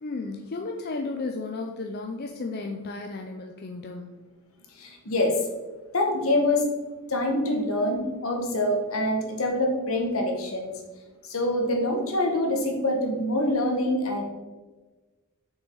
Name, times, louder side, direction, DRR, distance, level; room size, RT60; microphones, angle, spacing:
voice 1, 0.0-4.2, left 3 dB, 45° left, 3 dB, 0.5 m, -34 dB
voice 2, 4.7-5.4 5.9-6.7 7.1-10.7 11.2-14.2, left 1 dB, 70° left, 2 dB, 1.4 m, -25 dB
6.4 x 5.9 x 3.9 m, 1.3 s
head